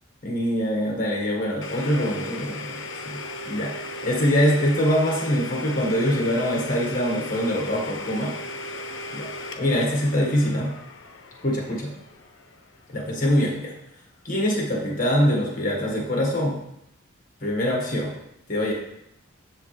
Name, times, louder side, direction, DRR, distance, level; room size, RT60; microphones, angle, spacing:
voice 1, 0.2-3.2 3.4-3.7 4.0-8.3 9.1-9.3 9.5-10.7 11.4-11.9 12.9-13.7 14.2-16.6 17.4-18.1 18.5-18.7, equal, 40° left, -2 dB, 1.6 m, -24 dB
Domestic sounds home sounds, 1.6-13.3, left 2 dB, 80° left, 0.7 m, -36 dB
7.3 x 6.8 x 3.3 m, 0.79 s
head